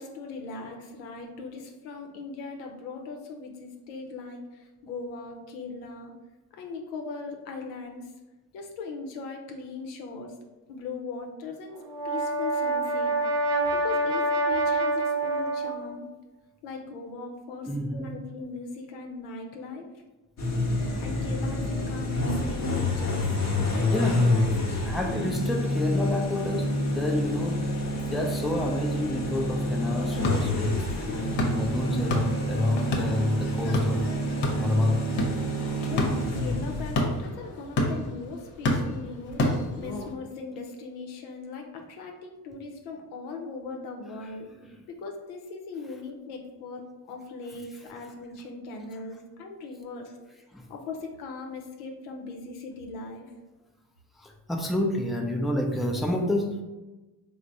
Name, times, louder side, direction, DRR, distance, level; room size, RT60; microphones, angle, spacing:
voice 1, 0.0-6.1 6.5-8.1 8.5-10.4 10.7-16.0 16.6-19.9 20.8-23.2 23.6-25.0 35.5-44.5 44.9-50.2 50.7-53.3, left 3 dB, 85° left, 3 dB, 0.7 m, -39 dB
Brass instrument, 11.8-16.0, right 2 dB, 50° right, 0.7 m, -26 dB
voice 2, 17.7-18.1 23.9-24.3 24.7-27.8 28.1-30.9 31.2-34.1 34.5-35.1 44.2-44.3 44.6-44.8 50.5-50.7 54.2-56.6, left 1 dB, ahead, 1 dB, 0.5 m, -29 dB
sound 1, 20.4-37.2, left 1 dB, 35° left, 0.9 m, -28 dB
sound 2, 30.0-40.1, left 1 dB, 65° left, 0.9 m, -31 dB
3.3 x 2.1 x 3.9 m, 1.1 s
supercardioid pair, 60°, 45 cm